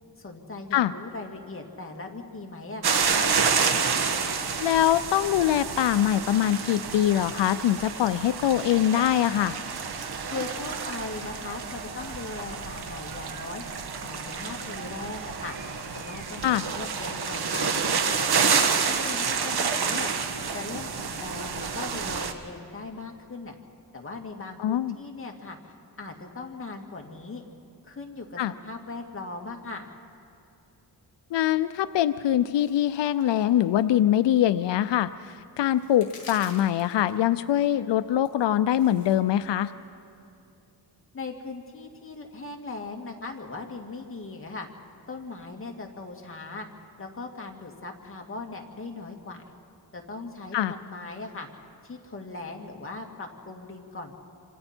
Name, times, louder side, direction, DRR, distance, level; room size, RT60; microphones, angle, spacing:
voice 1, 0.2-3.3 10.3-13.6 14.0-15.6 15.9-17.9 18.3-20.1 20.5-23.6 23.9-27.4 27.8-29.9 41.1-44.7 45.1-46.7 47.0-49.4 49.9-51.5 51.8-54.2, left 3 dB, 30° left, 2 dB, 2.2 m, -39 dB
sound 1, 2.8-22.3, right 5 dB, 65° right, 1.4 m, -29 dB
voice 2, 4.6-9.6 16.4-16.6 24.6-24.9 28.4-28.5 31.3-39.7 50.5-50.7, left 11 dB, 90° left, 13 dB, 0.6 m, -23 dB
Cheering / Crowd, 9.9-16.6, right 4 dB, 45° right, 2.0 m, -44 dB
sound 2, 32.6-33.5 33.8-33.9 34.3-34.4 35.4-35.5 35.7-37.2 38.3-39.2, left 3 dB, 55° left, 5.7 m, -47 dB
26.5 x 26.0 x 4.4 m, 2.7 s
wide cardioid pair, 135°, 41 cm